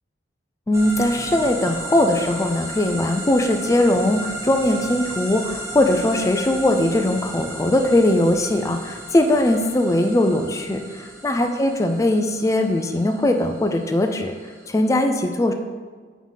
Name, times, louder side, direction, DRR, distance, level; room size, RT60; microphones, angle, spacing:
voice 1, 0.7-14.3 14.7-15.5, left 1 dB, 15° left, 5 dB, 0.4 m, -20 dB
sound 1, 0.7-14.9, right 1 dB, 15° right, 1.0 m, -35 dB
4.7 x 3.9 x 5.6 m, 1.5 s
head